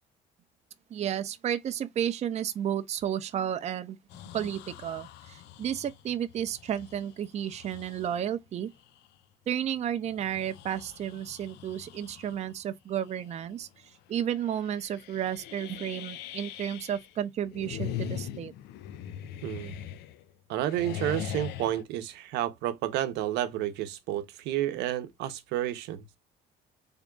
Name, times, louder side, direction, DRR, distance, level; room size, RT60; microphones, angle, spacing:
voice 1, 0.9-4.0 4.3-8.7 9.5-13.7 14.1-18.5, right 10 dB, 40° right, 0.5 m, -32 dB
sound 1, 4.1-8.3 8.8-9.0 10.0-12.5 13.0-13.4 13.7-13.8 14.3-17.1 17.4-20.3 20.6-21.8, left 9 dB, 85° left, 0.5 m, -41 dB
voice 2, 19.4-19.7 20.5-26.0, right 12 dB, 90° right, 0.8 m, -31 dB
3.6 x 2.2 x 3.7 m
cardioid pair, 110°, 17 cm